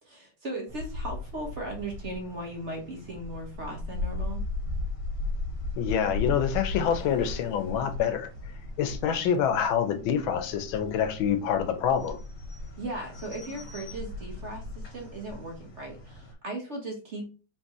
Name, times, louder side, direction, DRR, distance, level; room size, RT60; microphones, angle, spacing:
voice 1, 0.0-4.4 12.8-17.3, right 2 dB, 45° right, 1.1 m, -37 dB
sound 1, 0.7-16.3, left 2 dB, 55° left, 1.3 m, -37 dB
voice 2, 5.8-8.3 8.8-12.2, left 8 dB, 85° left, 1.5 m, -26 dB
4.5 x 3.4 x 2.9 m
omnidirectional pair, 2.1 m